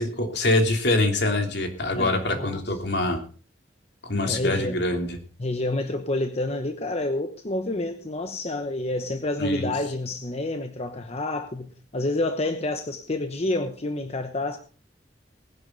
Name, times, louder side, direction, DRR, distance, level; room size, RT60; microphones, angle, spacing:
voice 1, 0.0-3.2 4.0-5.1 9.4-9.7, left 2 dB, 65° left, 3.1 m, -24 dB
voice 2, 1.9-2.6 4.2-4.8 5.4-14.6, left 2 dB, 35° left, 1.0 m, -29 dB
19.5 x 11.0 x 3.9 m
head